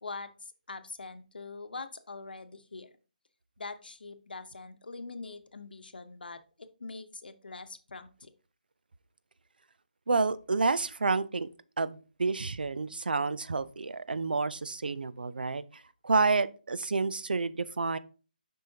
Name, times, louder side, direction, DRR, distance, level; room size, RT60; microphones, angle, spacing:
voice 1, 0.0-2.9 3.6-6.4 6.8-8.3, left 3 dB, 85° left, 10 dB, 0.9 m, -43 dB
voice 2, 10.1-11.5 11.8-15.6 16.0-18.0, right 4 dB, 80° right, 15 dB, 0.6 m, -29 dB
7.5 x 5.4 x 2.8 m, 0.36 s
hypercardioid pair, 175°, 5 cm